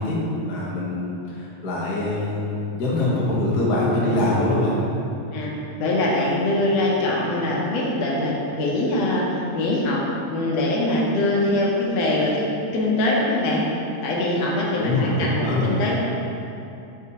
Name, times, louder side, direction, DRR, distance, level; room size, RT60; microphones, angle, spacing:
voice 1, 0.0-4.8 14.8-15.9, left 1 dB, 90° left, -6 dB, 0.8 m, -23 dB
voice 2, 5.8-10.0 10.2-12.5 12.7-13.6 14.0-16.0, left 1 dB, 70° left, -3 dB, 1.7 m, -23 dB
8.2 x 4.1 x 2.8 m, 2.7 s
omnidirectional pair, 3.4 m